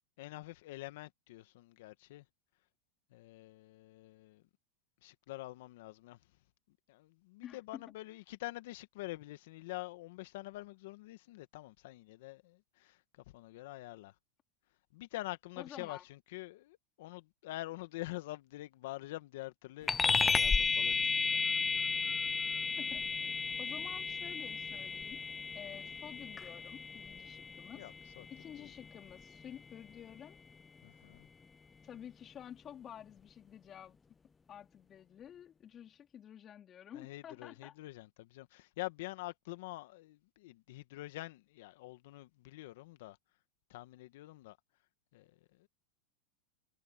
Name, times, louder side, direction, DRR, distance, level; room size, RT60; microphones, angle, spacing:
voice 1, 0.2-2.2 3.1-4.4 5.0-6.2 6.9-14.1 14.9-21.4 27.7-28.3 28.6-28.7 30.8-31.3 36.9-43.2 43.7-44.6 45.1-45.7, left 18 dB, 70° left, 1.6 m, -46 dB
voice 2, 7.4-7.8 15.6-16.0 22.8-23.1 23.6-25.2 25.5-27.9 28.3-30.4 31.8-34.0 34.5-37.7, left 9 dB, 30° left, 4.0 m, -50 dB
sound 1, 19.9-29.7, left 5 dB, 15° left, 0.4 m, -34 dB
hypercardioid pair, 115°, 0 cm